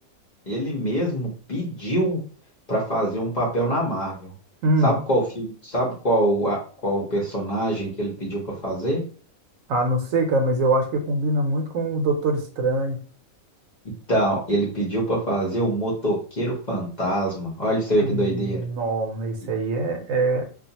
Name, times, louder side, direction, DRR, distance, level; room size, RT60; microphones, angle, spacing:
voice 1, 0.5-2.2 2.7-4.3 4.8-9.0 14.1-18.6, right 1 dB, 40° left, -4 dB, 0.7 m, -24 dB
voice 2, 4.6-4.9 9.7-13.0 18.0-20.4, right 2 dB, 75° right, 3 dB, 1.0 m, -23 dB
2.4 x 2.3 x 2.7 m, 0.40 s
omnidirectional pair, 1.4 m